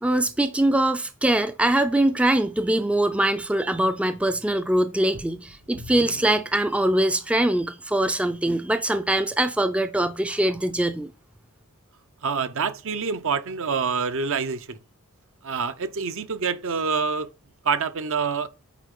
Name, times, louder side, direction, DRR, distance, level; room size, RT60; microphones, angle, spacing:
voice 1, 0.0-11.1, right 1 dB, 5° right, 0.4 m, -23 dB
sound 1, 5.1-7.6 8.2-8.3 8.9-9.0, left 1 dB, 80° right, 1.3 m, -44 dB
voice 2, 12.2-14.8 15.4-17.3 17.6-18.5, right 5 dB, 65° right, 0.7 m, -26 dB
8.3 x 4.6 x 3.7 m
head